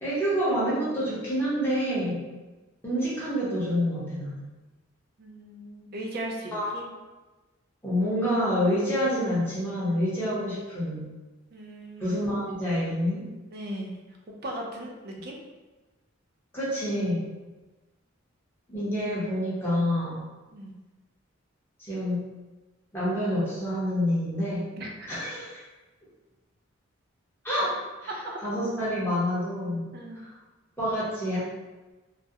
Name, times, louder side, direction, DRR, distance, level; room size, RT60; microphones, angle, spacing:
voice 1, 0.0-2.2 2.8-4.4 6.5-6.7 7.8-11.0 12.0-13.3 16.5-17.3 18.7-20.2 21.8-22.2 22.9-24.7 25.1-25.6 27.4-28.1 28.4-29.8 30.2-30.3 30.8-31.4, equal, 10° left, -10 dB, 0.6 m, -27 dB
voice 2, 5.2-6.9 11.5-12.4 13.5-14.2 14.4-15.4 20.5-20.7 24.8-25.1 28.1-28.4 29.9-30.2, right 1 dB, 50° right, 0 dB, 0.4 m, -38 dB
2.3 x 2.0 x 2.7 m, 1.2 s
head